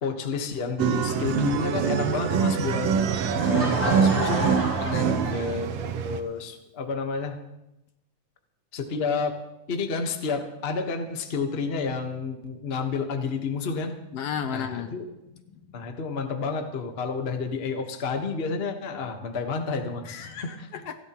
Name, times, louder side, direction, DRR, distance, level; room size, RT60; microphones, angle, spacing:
voice 1, 0.0-2.9 3.4-4.6 5.3-7.4 8.7-9.4 9.7-13.9 14.5-15.0 15.7-20.3 20.6-20.7, left 4 dB, 85° left, 4 dB, 0.5 m, -30 dB
sound 1, 0.8-6.2, right 7 dB, 70° right, 1.5 m, -25 dB
Laughter / Crowd, 3.1-5.9, right 1 dB, 30° right, 3.9 m, -31 dB
voice 2, 4.8-5.7 14.1-15.0 15.5-15.6 20.0-21.0, left 7 dB, 70° left, 8 dB, 1.5 m, -34 dB
29.5 x 11.5 x 3.0 m, 0.93 s
omnidirectional pair, 3.5 m